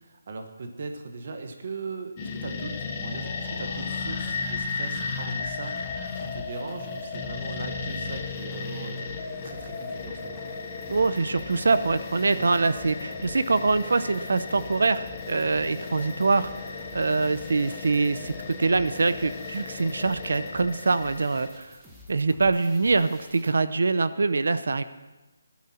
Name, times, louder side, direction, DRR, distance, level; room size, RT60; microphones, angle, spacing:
voice 1, 0.0-5.8 6.1-10.4 12.3-12.6, right 3 dB, 35° right, 5 dB, 1.3 m, -39 dB
sound 1, 2.2-21.5, left 4 dB, 15° left, 0.9 m, -35 dB
sound 2, 3.6-23.5, left 2 dB, 5° right, 1.1 m, -49 dB
voice 2, 10.9-16.5 16.9-21.7 22.1-24.8, right 3 dB, 60° right, 13 dB, 0.6 m, -24 dB
16.5 x 11.5 x 4.3 m, 1.2 s
hypercardioid pair, 180°, 0 cm